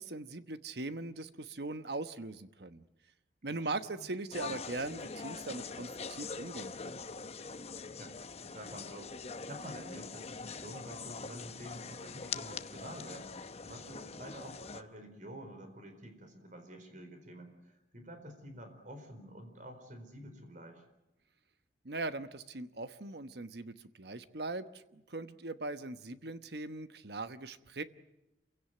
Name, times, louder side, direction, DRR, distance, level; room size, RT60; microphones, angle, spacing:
voice 1, 0.0-2.8 3.4-7.0 21.8-27.8, right 2 dB, 65° right, 11 dB, 1.2 m, -40 dB
voice 2, 3.5-4.0 7.9-20.8, equal, 45° right, 7 dB, 4.6 m, -49 dB
sound 1, 4.3-14.8, left 5 dB, 35° left, 0.9 m, -43 dB
28.0 x 17.0 x 9.4 m, 0.95 s
head